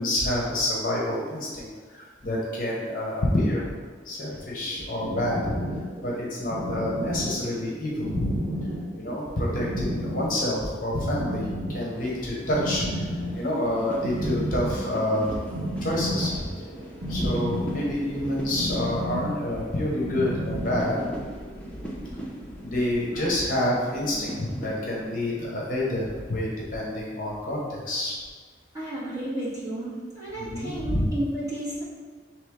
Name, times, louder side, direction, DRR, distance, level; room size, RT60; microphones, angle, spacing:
voice 1, 0.0-3.7 4.0-5.6 6.0-8.4 9.0-11.4 11.7-13.1 13.3-15.3 15.8-16.5 17.1-21.0 22.6-28.2 30.4-31.1, left 1 dB, 45° left, -4 dB, 0.8 m, -28 dB
sound 1, 4.6-21.3, equal, 90° right, 1.0 m, -33 dB
sound 2, 12.0-26.3, right 1 dB, 5° left, 0.6 m, -39 dB
voice 2, 28.7-31.8, right 1 dB, 20° right, -10 dB, 1.4 m, -32 dB
4.2 x 3.1 x 3.6 m, 1.5 s
head